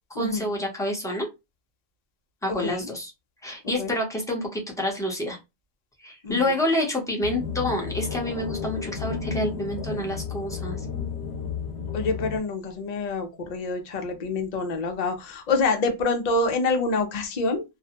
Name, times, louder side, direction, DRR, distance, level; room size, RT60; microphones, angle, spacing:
voice 1, 0.1-1.3 2.4-3.1 3.4-5.4 6.0-10.8, left 1 dB, 5° left, 0.6 m, -28 dB
sound 1, 7.2-12.4, left 6 dB, 75° left, 0.8 m, -32 dB
voice 2, 11.9-17.6, left 3 dB, 50° left, 0.6 m, -26 dB
2.5 x 2.0 x 2.8 m
omnidirectional pair, 1.1 m